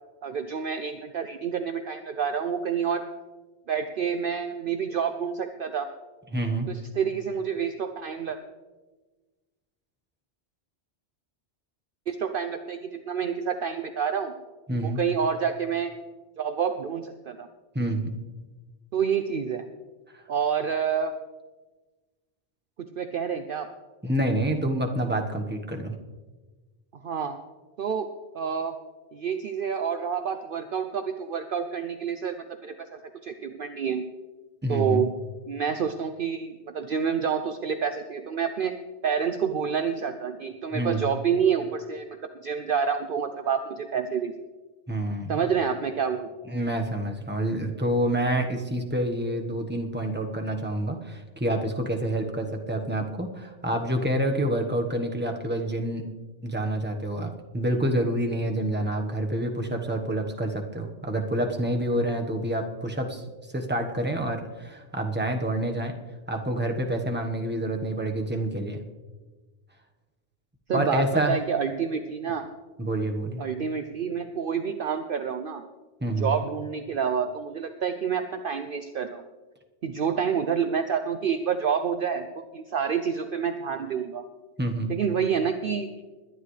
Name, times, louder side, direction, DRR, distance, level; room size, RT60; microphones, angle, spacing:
voice 1, 0.2-3.0 3.7-5.9 6.7-8.4 12.1-14.4 14.8-15.9 16.4-17.5 18.9-19.7 20.3-21.1 23.0-23.7 27.0-27.4 27.8-28.1 28.3-28.8 29.1-34.0 34.7-35.1 35.5-38.7 39.0-42.1 42.4-44.3 45.3-46.3 70.7-72.4 73.4-75.6 76.2-79.2 79.8-82.3 82.5-84.2 84.9-85.9, right 7 dB, 55° right, 8 dB, 0.7 m, -28 dB
voice 2, 6.3-6.7 14.7-15.0 17.7-18.1 24.0-25.9 34.6-35.0 40.7-41.0 44.9-45.4 46.5-56.0 56.4-63.2 63.5-65.9 66.3-68.8 70.7-71.4 72.8-73.4 76.0-76.3 84.6-84.9, right 1 dB, 10° right, 2 dB, 1.2 m, -27 dB
21.0 x 10.5 x 3.3 m, 1.3 s
omnidirectional pair, 1.2 m